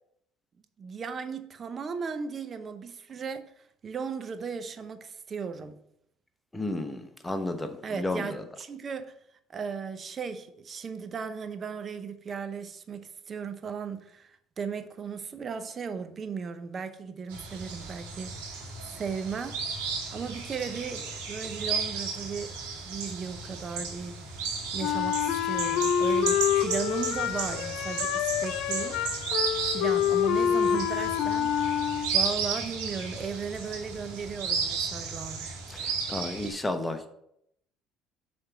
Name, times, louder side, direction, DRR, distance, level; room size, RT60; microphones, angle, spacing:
voice 1, 0.8-3.5 3.8-5.8 7.8-9.1 9.5-18.5 18.8-19.6 20.1-22.6 22.8-24.2 24.7-29.0 29.7-35.6, right 6 dB, 40° right, 0.7 m, -36 dB
voice 2, 6.5-8.4 35.7-37.1, left 2 dB, 10° left, 1.0 m, -32 dB
sound 1, 17.3-36.5, right 5 dB, 85° right, 2.0 m, -34 dB
Wind instrument woodwind instrument, 24.8-32.4, left 9 dB, 70° left, 0.4 m, -27 dB
6.5 x 3.5 x 6.2 m
supercardioid pair, 75°, 0 cm